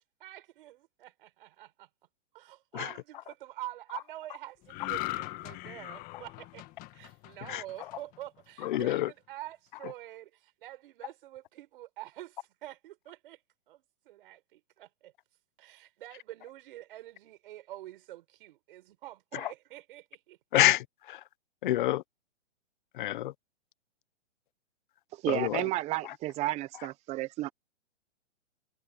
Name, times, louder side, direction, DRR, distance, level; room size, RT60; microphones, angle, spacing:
voice 1, 0.2-1.9 2.3-6.6 6.9-13.4 13.7-15.1 15.6-20.4, right 14 dB, 50° right, 5.2 m, -46 dB
sound 1, 4.7-8.2 8.6-8.8, left 19 dB, 25° left, 1.5 m, -39 dB
voice 2, 8.6-9.1 19.4-19.5 20.5-21.2 21.6-22.0 23.0-23.3 25.3-25.6, left 14 dB, 45° left, 1.0 m, -27 dB
voice 3, 25.1-27.5, right 17 dB, 20° right, 1.0 m, -32 dB
hypercardioid pair, 150°, 35 cm